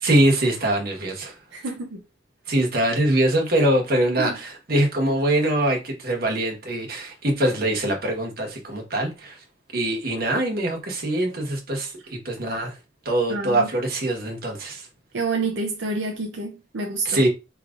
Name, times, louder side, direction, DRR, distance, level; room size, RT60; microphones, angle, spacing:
voice 1, 0.0-1.4 2.5-9.4 9.7-12.7 13.0-14.9 17.0-17.3, right 1 dB, 55° right, 1.2 m, -23 dB
voice 2, 1.5-2.0 4.2-4.3 13.3-13.7 15.1-17.2, right 3 dB, 80° right, 0.6 m, -28 dB
4.9 x 3.0 x 2.5 m
head